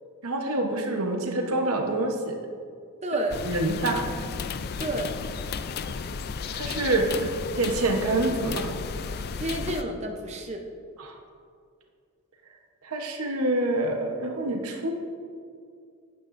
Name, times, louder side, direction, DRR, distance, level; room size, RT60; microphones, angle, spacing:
voice 1, 0.2-2.4 3.4-4.1 6.5-8.7 11.0-11.2 12.8-14.9, right 2 dB, 75° right, 2 dB, 1.0 m, -26 dB
voice 2, 3.0-3.4 4.8-5.1 9.4-10.6, right 1 dB, 30° right, 2 dB, 0.7 m, -30 dB
sound 1, 3.3-9.8, left 5 dB, 45° left, 0.4 m, -34 dB
11.5 x 9.7 x 2.6 m, 2.2 s
head